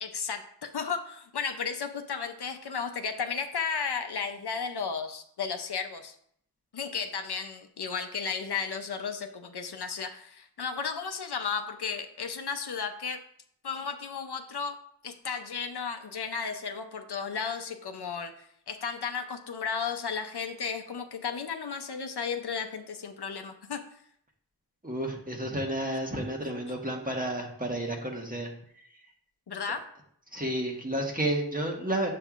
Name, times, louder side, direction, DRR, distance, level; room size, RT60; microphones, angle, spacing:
voice 1, 0.0-6.2 6.7-13.2 13.6-14.8 15.0-23.8 29.5-29.8, left 6 dB, 70° left, 6 dB, 0.6 m, -34 dB
voice 2, 24.8-28.5 30.3-32.1, right 1 dB, 20° right, 0 dB, 1.3 m, -31 dB
7.6 x 5.3 x 2.4 m, 0.67 s
wide cardioid pair, 50°, 42 cm